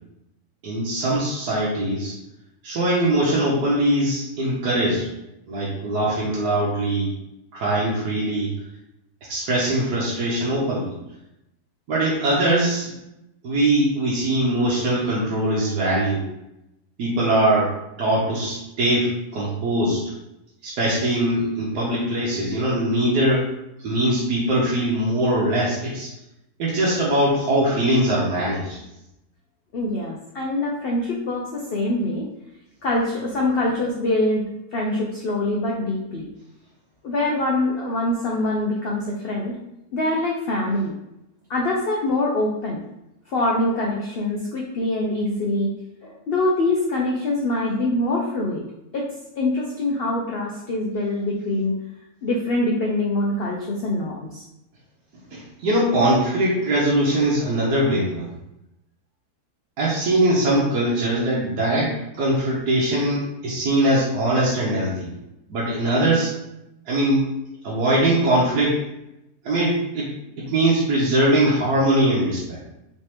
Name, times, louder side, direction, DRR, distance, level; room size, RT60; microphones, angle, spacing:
voice 1, 0.6-2.2 2.6-5.1 5.5-7.1 7.5-8.5 9.3-10.9 11.9-12.9 13.4-16.2 17.0-20.0 20.6-23.5 23.8-26.1 26.6-28.8 55.3-58.3 59.8-65.1 65.5-66.3 66.9-67.2 67.6-68.8 69.4-72.6, right 1 dB, 80° right, -7 dB, 1.3 m, -21 dB
voice 2, 29.7-32.3 32.8-34.4 34.7-36.3 37.0-39.6 39.9-40.9 41.5-42.8 43.3-45.7 46.0-48.6 48.9-49.1 49.4-51.7 52.2-54.4, left 2 dB, 80° left, -2 dB, 0.5 m, -24 dB
3.3 x 3.2 x 2.9 m, 0.88 s
omnidirectional pair, 1.6 m